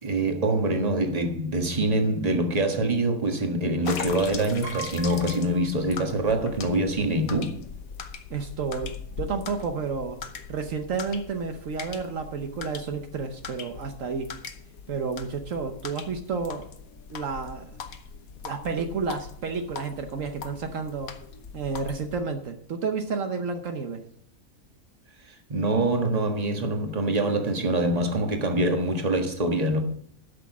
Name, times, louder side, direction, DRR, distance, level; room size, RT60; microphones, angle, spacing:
voice 1, 0.0-7.6 25.5-29.8, right 1 dB, 30° right, 1.5 m, -25 dB
sound 1, 3.8-22.2, left 6 dB, 90° left, 1.4 m, -41 dB
Piano, 4.6-6.5 6.8-6.9 8.0-8.1 8.4-8.7, right 7 dB, 50° right, 1.4 m, -42 dB
voice 2, 8.3-10.2 10.5-14.3 14.9-16.7 17.1-17.7 18.4-21.1 21.5-24.0, right 5 dB, 70° right, 1.2 m, -31 dB
11.5 x 6.2 x 7.2 m
omnidirectional pair, 1.5 m